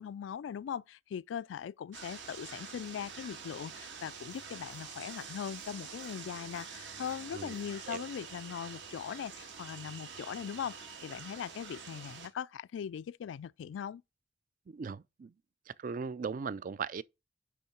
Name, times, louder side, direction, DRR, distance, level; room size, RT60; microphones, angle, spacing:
voice 1, 0.0-10.8 11.0-14.0, left 8 dB, 80° left, 0.3 m, -40 dB
sound 1, 1.9-12.3, right 6 dB, 75° right, 1.8 m, -47 dB
voice 2, 7.3-8.0 14.7-15.3 15.7-17.0, right 5 dB, 45° right, 0.3 m, -39 dB
10.0 x 3.7 x 4.2 m
head